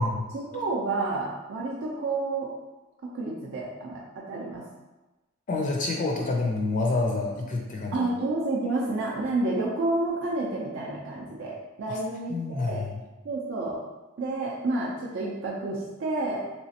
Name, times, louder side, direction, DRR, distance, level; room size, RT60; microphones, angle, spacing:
voice 1, 0.3-2.5 3.0-4.7 7.9-12.8 13.2-13.8 14.2-16.4, right 2 dB, 65° right, -4 dB, 0.5 m, -30 dB
voice 2, 5.5-8.1 11.9-12.0 12.3-12.9, left 3 dB, 40° left, 0 dB, 0.4 m, -28 dB
3.2 x 3.0 x 2.8 m, 1.1 s
head